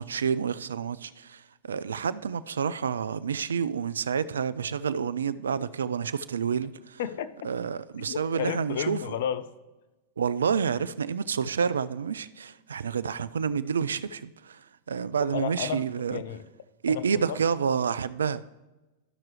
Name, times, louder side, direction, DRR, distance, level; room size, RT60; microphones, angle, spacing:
voice 1, 0.0-7.0 7.4-9.0 10.2-16.2 16.8-18.4, right 6 dB, 75° right, 0.3 m, -29 dB
voice 2, 7.0-7.5 8.1-9.5 15.3-16.4 16.9-17.4, left 9 dB, 60° left, 0.5 m, -33 dB
13.0 x 5.8 x 3.2 m
figure-of-eight pair, 95°, 0 cm